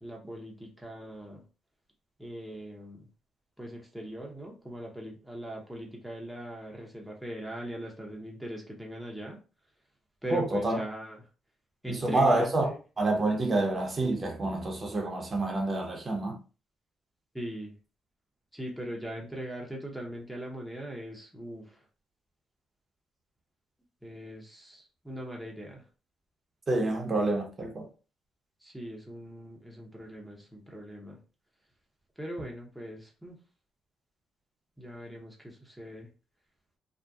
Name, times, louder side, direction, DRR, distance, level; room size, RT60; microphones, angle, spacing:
voice 1, 0.0-1.4 2.2-3.1 3.6-9.4 10.2-11.2 11.8-12.8 17.3-17.8 18.5-21.8 24.0-25.8 28.6-31.2 32.2-33.4 34.8-36.1, equal, ahead, 0.7 m, -40 dB
voice 2, 10.3-10.8 11.9-12.7 13.0-16.4 26.7-27.9, right 2 dB, 35° right, 0.7 m, -28 dB
2.6 x 2.1 x 2.3 m
cardioid pair, 90°, 0 cm